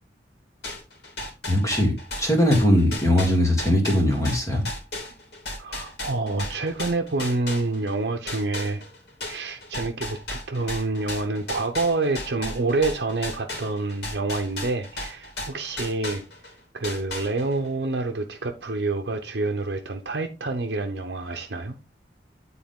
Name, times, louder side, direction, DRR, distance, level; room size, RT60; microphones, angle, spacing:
sound 1, 0.6-8.0 8.3-16.5 16.8-17.7, left 2 dB, 65° left, 2.8 m, -35 dB
voice 1, 1.5-1.9 2.2-4.7, left 1 dB, 20° left, 1.8 m, -20 dB
voice 2, 5.6-8.8 9.2-16.2 16.7-21.8, right 3 dB, 70° right, 0.8 m, -27 dB
9.5 x 4.1 x 3.7 m
head